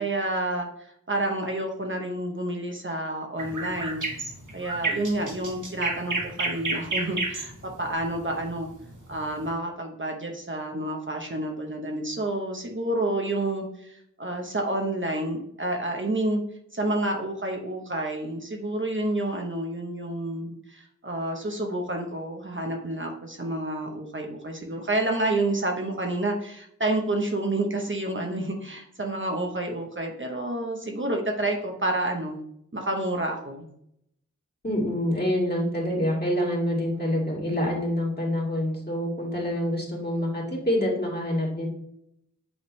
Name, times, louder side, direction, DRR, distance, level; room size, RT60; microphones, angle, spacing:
voice 1, 0.0-4.0 4.5-7.5 7.8-8.7 9.1-16.4 16.7-32.4 32.7-33.7, right 1 dB, 40° right, 1 dB, 0.9 m, -29 dB
sound 1, 3.4-9.5, right 3 dB, 80° right, 1.3 m, -31 dB
voice 2, 34.6-41.7, left 1 dB, 30° left, -3 dB, 2.2 m, -26 dB
7.9 x 3.7 x 3.2 m, 0.73 s
wide cardioid pair, 65°, 30 cm